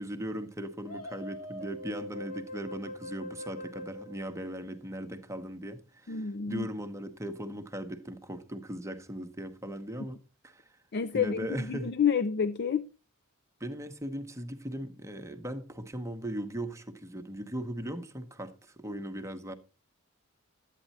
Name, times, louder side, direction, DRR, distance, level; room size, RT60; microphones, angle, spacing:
voice 1, 0.0-10.2 10.4-10.8 11.1-11.9 13.6-19.5, equal, 15° right, 0.9 m, -38 dB
sound 1, 0.9-5.1, left 1 dB, 80° left, 2.9 m, -43 dB
voice 2, 6.1-6.7 10.9-12.9, left 7 dB, 50° left, 0.5 m, -29 dB
12.5 x 9.1 x 4.2 m
head